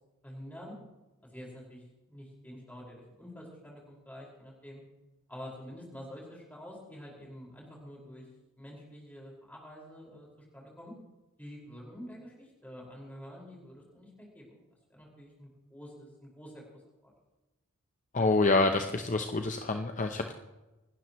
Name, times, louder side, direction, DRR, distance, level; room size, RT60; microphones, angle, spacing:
voice 1, 0.2-0.7 1.3-4.8 5.3-8.2 8.6-10.9 11.4-14.6 14.9-16.8, equal, 5° left, -3 dB, 5.1 m, -47 dB
voice 2, 18.1-20.3, left 3 dB, 35° left, 5 dB, 0.7 m, -27 dB
25.5 x 12.0 x 3.1 m, 1.1 s
head